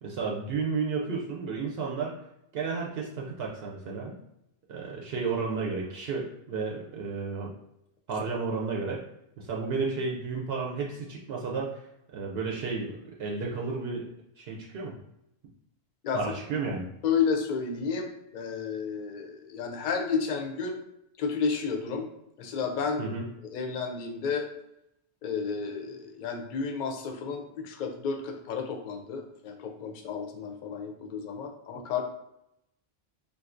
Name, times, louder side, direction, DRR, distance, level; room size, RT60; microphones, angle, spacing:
voice 1, 0.0-2.1 2.5-4.2 4.7-7.5 8.1-9.0 9.4-11.8 12.1-14.1 14.4-14.9 16.1-16.9 23.0-23.2, right 4 dB, 75° right, -2 dB, 0.8 m, -32 dB
voice 2, 17.0-20.8 21.2-22.1 22.4-23.0 23.5-24.5 25.2-32.0, left 5 dB, 60° left, 4 dB, 0.6 m, -31 dB
3.5 x 2.6 x 2.4 m, 0.81 s
omnidirectional pair, 1.0 m